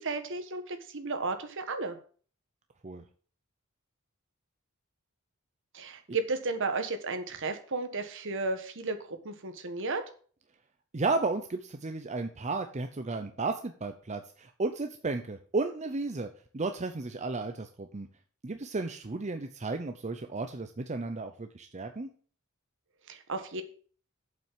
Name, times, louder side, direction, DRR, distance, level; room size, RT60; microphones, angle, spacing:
voice 1, 0.0-2.0 5.7-10.0 23.1-23.6, right 3 dB, 60° right, 8 dB, 1.4 m, -33 dB
voice 2, 10.9-18.1 18.4-22.1, right 3 dB, 35° right, 7 dB, 0.7 m, -33 dB
7.7 x 5.8 x 7.2 m, 0.43 s
head